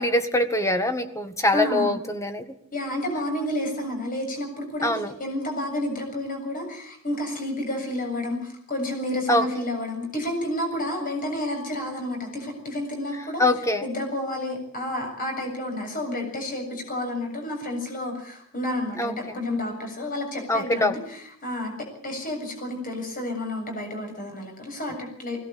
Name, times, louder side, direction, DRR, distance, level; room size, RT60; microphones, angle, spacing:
voice 1, 0.0-2.4 4.8-5.1 9.3-9.5 13.4-13.9 19.0-19.4 20.5-21.0, left 1 dB, 15° left, 8 dB, 1.7 m, -23 dB
voice 2, 1.5-2.0 2.7-4.9 5.2-13.4 13.8-25.5, left 1 dB, 45° left, 3 dB, 7.4 m, -30 dB
20.5 x 18.0 x 8.5 m, 0.64 s
head